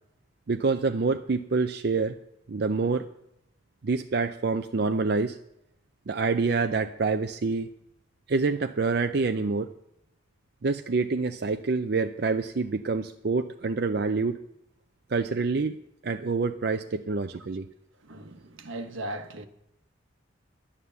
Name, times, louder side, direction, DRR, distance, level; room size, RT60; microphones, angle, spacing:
voice 1, 0.5-2.2 2.5-3.1 3.8-5.4 6.1-7.7 8.3-9.7 10.6-14.4 15.1-15.8 16.0-17.7, right 4 dB, 50° right, 0.5 m, -26 dB
voice 2, 18.0-19.5, right 1 dB, 80° right, 1.2 m, -38 dB
11.0 x 9.7 x 6.9 m
head